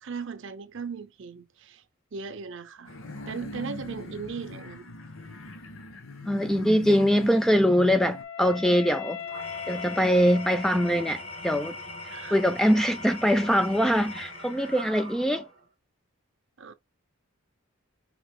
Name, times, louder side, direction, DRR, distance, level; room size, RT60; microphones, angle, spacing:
voice 1, 0.0-1.8 2.1-3.0 3.3-4.9 12.1-12.4 16.6-16.7, right 5 dB, 60° right, 0.6 m, -38 dB
sound 1, 2.9-8.2, left 1 dB, 70° left, 1.0 m, -41 dB
voice 2, 6.3-9.2 9.7-11.8 12.3-15.5, equal, ahead, 0.3 m, -23 dB
Wind instrument woodwind instrument, 7.1-11.3, left 8 dB, 50° left, 0.6 m, -40 dB
Engine / Tools, 9.2-15.6, left 2 dB, 90° left, 3.3 m, -40 dB
5.0 x 2.9 x 3.6 m
head